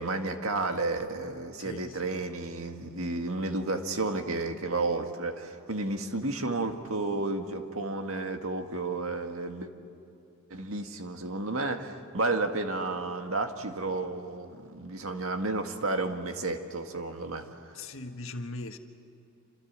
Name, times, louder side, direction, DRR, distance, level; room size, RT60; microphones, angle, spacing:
voice 1, 0.0-9.7 10.5-17.5, right 2 dB, 70° right, 5 dB, 1.9 m, -32 dB
voice 2, 1.6-2.2 17.7-18.8, left 2 dB, 65° left, 5 dB, 1.6 m, -40 dB
28.0 x 27.0 x 7.5 m, 2.6 s
head